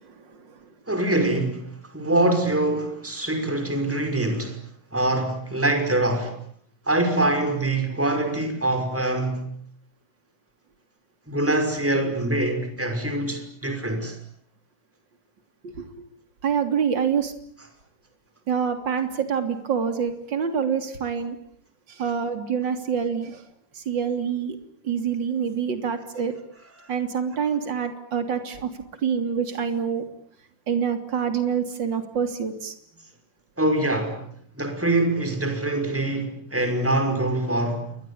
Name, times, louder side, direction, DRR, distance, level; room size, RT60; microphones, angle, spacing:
voice 1, 0.0-0.7 15.7-15.9 16.4-17.3 18.5-21.4 21.9-23.4 23.8-24.6 24.8-26.3 26.9-28.7 29.0-30.0 30.7-32.7, right 7 dB, 35° right, 3.5 m, -26 dB
voice 2, 0.9-4.6 4.9-6.4 6.9-9.5 11.3-14.2 33.6-34.2 34.6-38.0, right 2 dB, 5° right, 5.4 m, -24 dB
28.5 x 23.0 x 8.7 m
omnidirectional pair, 3.7 m